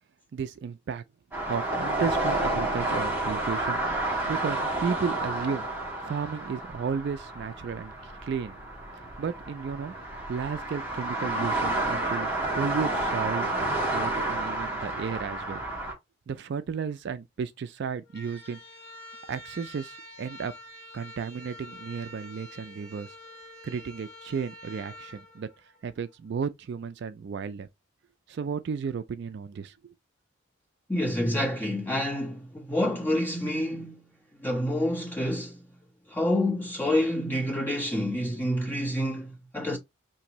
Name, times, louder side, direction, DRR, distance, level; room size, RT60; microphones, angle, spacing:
voice 1, 0.3-1.0 1.4-3.8 4.3-5.7 6.1-8.6 9.2-9.9 10.3-13.5 13.9-15.6 16.3-18.6 19.3-20.5 20.9-23.2 23.6-25.5 25.8-27.7 28.3-29.9, right 6 dB, 55° right, 0.3 m, -33 dB
sound 1, 1.3-15.9, right 2 dB, 10° right, 1.4 m, -30 dB
sound 2, 18.0-26.2, left 1 dB, 50° left, 1.2 m, -47 dB
voice 2, 30.9-34.1 34.4-35.6 36.1-39.8, left 1 dB, 10° left, 1.4 m, -28 dB
5.7 x 2.6 x 3.0 m
head